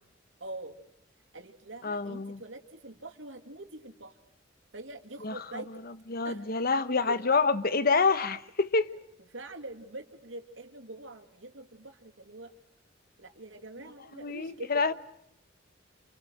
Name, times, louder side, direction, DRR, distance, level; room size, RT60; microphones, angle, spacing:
voice 1, 0.4-0.8 1.3-4.1 4.7-5.7 6.2-6.6 7.1-7.2 9.3-12.5 13.2-14.8, right 2 dB, 90° right, 2.7 m, -44 dB
voice 2, 1.8-2.4 5.2-5.3 6.1-8.9 14.1-14.9, left 4 dB, 50° left, 1.1 m, -27 dB
28.0 x 28.0 x 6.5 m
head